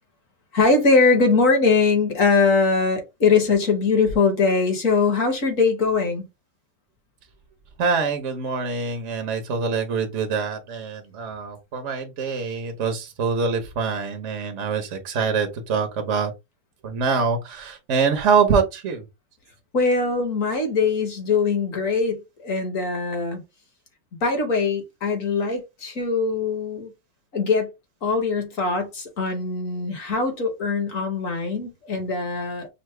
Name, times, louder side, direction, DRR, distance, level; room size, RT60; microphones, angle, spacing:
voice 1, 0.5-6.2 19.7-23.4 24.2-26.9 27.3-27.7 28.0-32.7, left 4 dB, 50° left, 1.3 m, -21 dB
voice 2, 7.8-16.3 16.8-19.0, right 5 dB, 60° right, 0.8 m, -24 dB
5.5 x 2.1 x 3.1 m
omnidirectional pair, 2.1 m